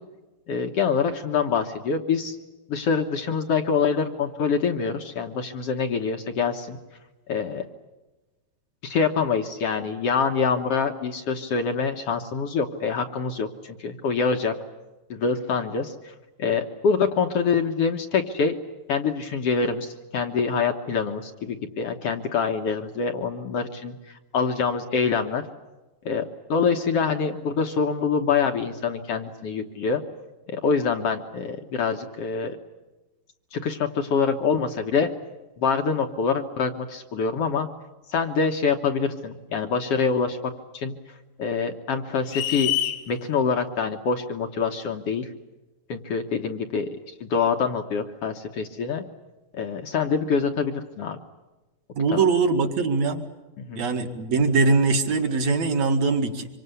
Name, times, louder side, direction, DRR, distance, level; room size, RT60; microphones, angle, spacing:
voice 1, 0.5-2.4 2.7-6.8 7.3-7.6 8.8-14.5 15.1-16.1 16.4-18.5 18.9-25.4 26.0-30.0 30.5-32.6 33.5-35.1 35.6-37.7 38.1-40.9 41.4-42.7 43.1-45.3 45.9-46.9 47.2-49.0 49.5-51.2 52.1-52.2 53.6-53.8, left 5 dB, 55° left, 6 dB, 1.8 m, -25 dB
sound 1, 42.3-43.0, left 13 dB, 90° left, 3.6 m, -25 dB
voice 2, 52.0-53.3 53.7-56.5, right 4 dB, 50° right, 6 dB, 2.8 m, -22 dB
25.5 x 25.0 x 8.3 m, 1.1 s
omnidirectional pair, 4.2 m